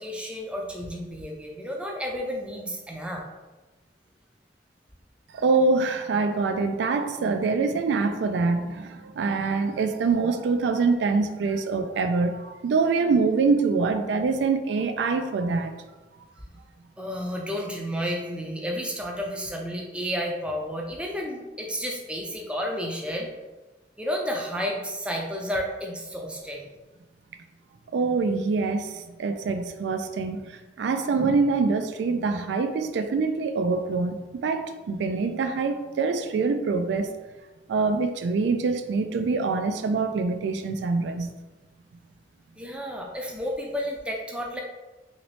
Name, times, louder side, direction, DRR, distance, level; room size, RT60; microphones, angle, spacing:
voice 1, 0.0-3.2 17.0-23.3 24.0-26.7 42.6-44.6, equal, 5° right, 0 dB, 0.4 m, -31 dB
voice 2, 5.3-15.8 27.9-37.1 37.7-41.3, right 4 dB, 80° right, 8 dB, 0.3 m, -25 dB
2.9 x 2.8 x 3.1 m, 1.1 s
head